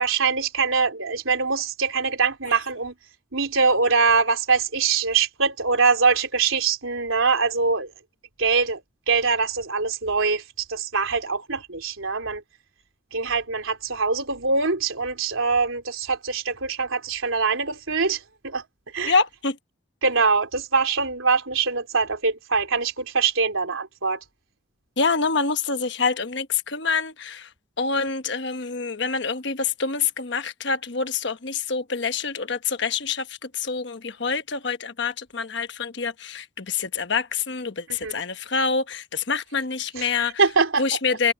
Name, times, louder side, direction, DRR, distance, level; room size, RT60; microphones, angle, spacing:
voice 1, 0.0-2.9 3.3-7.9 8.4-8.8 9.1-10.4 10.7-12.4 13.1-18.6 18.9-19.1 20.0-24.2 37.9-38.2 40.0-40.8, right 4 dB, 85° right, 3.8 m, -23 dB
voice 2, 19.0-19.6 25.0-27.5 27.8-40.4 40.8-41.3, left 5 dB, 60° left, 1.2 m, -26 dB
head